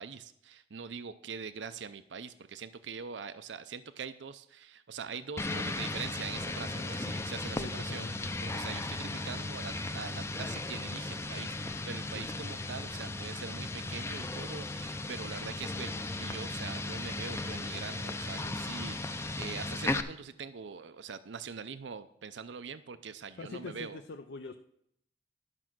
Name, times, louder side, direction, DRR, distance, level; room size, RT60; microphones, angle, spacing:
voice 1, 0.0-24.0, right 6 dB, 80° right, 12 dB, 0.5 m, -43 dB
sound 1, 5.4-20.0, left 2 dB, 15° left, 0.4 m, -36 dB
voice 2, 7.5-8.2 12.1-12.3 23.4-24.6, left 4 dB, 70° left, 5 dB, 0.5 m, -43 dB
11.5 x 6.2 x 6.0 m, 0.73 s
head